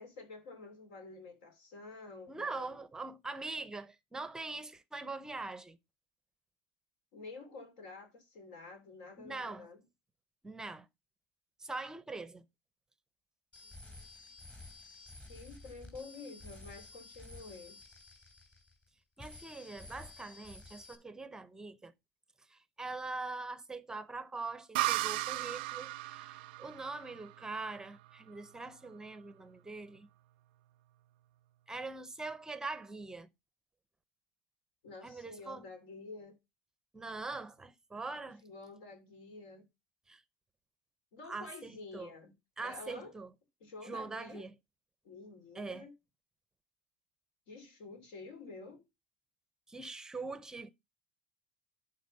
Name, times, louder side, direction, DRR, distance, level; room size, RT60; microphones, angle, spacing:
voice 1, 0.0-2.8 7.1-9.8 13.6-14.1 14.8-17.8 34.8-36.4 38.4-39.7 41.1-42.3 42.6-43.1 43.6-44.4 45.0-45.9 47.5-48.8, left 3 dB, 80° left, 2.9 m, -49 dB
voice 2, 2.3-5.8 9.2-9.7 10.4-10.9 11.6-12.4 19.2-21.9 22.5-30.1 31.7-33.3 35.0-35.6 36.9-38.4 40.1-40.2 41.2-42.1 42.6-43.3 43.8-44.5 45.5-45.9 49.7-50.7, right 3 dB, 10° right, 0.6 m, -43 dB
sound 1, 13.5-18.9 19.2-21.0, left 2 dB, 20° left, 2.9 m, -52 dB
sound 2, 24.7-28.3, right 19 dB, 85° right, 0.4 m, -36 dB
11.0 x 4.1 x 5.1 m
supercardioid pair, 125°, 5 cm